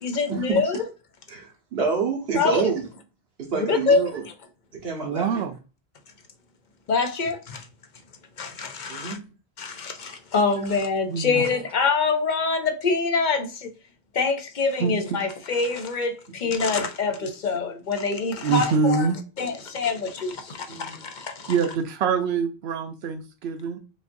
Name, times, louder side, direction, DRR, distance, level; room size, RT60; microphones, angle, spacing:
voice 1, 0.0-0.9 2.4-2.6 3.6-4.0 6.9-7.7 8.4-9.2 9.6-13.7 14.1-21.5, left 4 dB, 55° left, 0.7 m, -25 dB
voice 2, 1.3-2.9 3.4-4.2 4.7-5.4 8.9-9.3 16.4-16.5 20.7-21.0, right 5 dB, 70° right, 1.3 m, -28 dB
voice 3, 5.0-5.5 11.1-11.4 14.8-14.9 18.4-19.2 21.5-23.8, right 5 dB, 90° right, 0.8 m, -24 dB
5.0 x 2.6 x 2.6 m
omnidirectional pair, 1.0 m